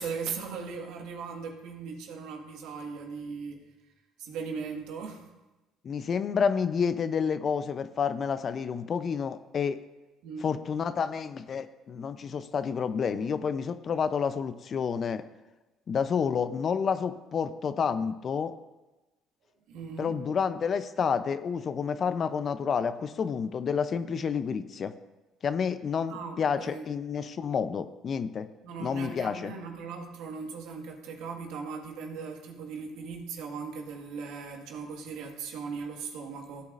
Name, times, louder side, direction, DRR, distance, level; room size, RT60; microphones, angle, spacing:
voice 1, 0.0-3.7 4.2-5.3 10.2-10.5 19.7-20.2 26.1-26.9 28.6-36.7, right 5 dB, 75° right, 2 dB, 1.7 m, -38 dB
voice 2, 5.8-9.8 10.4-15.2 15.9-18.5 20.0-24.9 25.4-28.5 28.8-29.5, left 6 dB, 50° left, 12 dB, 0.6 m, -29 dB
15.5 x 8.5 x 2.6 m, 1.1 s
supercardioid pair, 65°, 0 cm